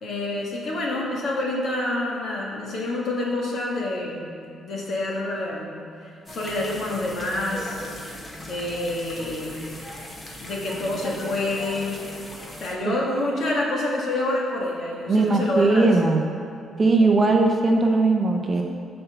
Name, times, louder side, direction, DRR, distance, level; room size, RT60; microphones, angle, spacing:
voice 1, 0.0-4.3 4.6-5.7 6.0-7.9 8.4-9.6 10.4-12.0 12.6-16.0 17.0-17.1, left 2 dB, 50° left, -3 dB, 1.9 m, -27 dB
sound 1, 6.3-12.8, left 1 dB, 20° left, 1.1 m, -39 dB
voice 2, 15.1-16.2 16.8-18.6, right 3 dB, 25° right, 2 dB, 0.6 m, -19 dB
10.5 x 4.4 x 6.9 m, 2.6 s
cardioid pair, 165°, 0 cm